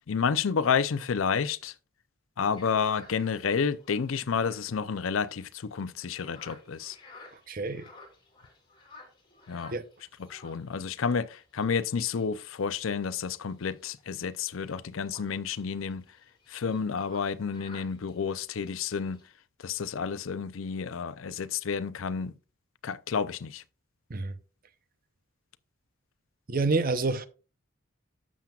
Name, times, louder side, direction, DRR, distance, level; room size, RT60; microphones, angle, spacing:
voice 1, 0.1-1.7 2.4-7.0 9.5-9.7 10.2-16.0 16.5-19.2 19.6-22.3 22.8-23.6, left 6 dB, 85° left, 0.5 m, -30 dB
sound 1, 2.5-19.3, left 2 dB, 25° left, 3.3 m, -55 dB
voice 2, 7.3-7.9 9.7-9.8 24.1-24.4 26.5-27.3, right 3 dB, 45° right, 0.7 m, -28 dB
11.5 x 7.3 x 2.4 m
head